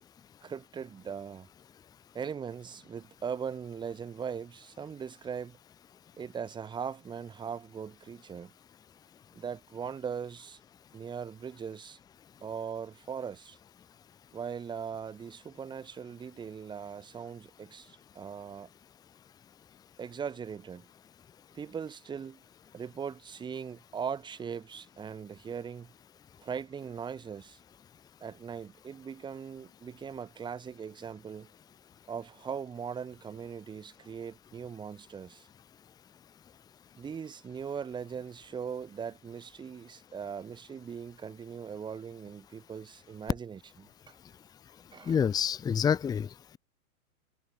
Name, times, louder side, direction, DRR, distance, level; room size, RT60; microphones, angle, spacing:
voice 1, 0.4-1.5 2.1-5.6 6.2-8.5 9.3-10.6 10.9-12.0 12.4-13.6 14.3-18.7 20.0-20.9 21.5-22.4 22.7-25.9 26.4-27.6 28.2-31.5 32.1-35.5 37.0-44.1 44.9-45.2, right 7 dB, 10° right, 2.7 m, -40 dB
voice 2, 45.1-46.3, left 7 dB, 10° left, 1.3 m, -27 dB
hypercardioid pair, 160°, 43 cm